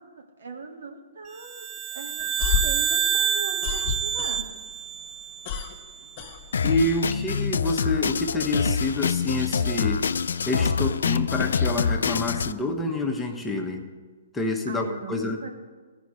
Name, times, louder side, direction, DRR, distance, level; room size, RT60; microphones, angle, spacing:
voice 1, 0.0-4.4 14.7-15.5, right 4 dB, 75° right, 3 dB, 1.3 m, -39 dB
sound 1, 1.4-6.0, right 8 dB, 20° right, 0.4 m, -28 dB
sound 2, 2.2-4.7 5.0-7.0, left 7 dB, 40° left, 1.2 m, -30 dB
Drum kit, 6.5-12.5, left 6 dB, 80° left, 0.3 m, -26 dB
voice 2, 6.6-10.0 10.5-13.9 14.3-15.4, left 2 dB, 10° left, 2 dB, 1.0 m, -27 dB
15.0 x 5.3 x 4.9 m, 1.4 s
hypercardioid pair, 130°, 0 cm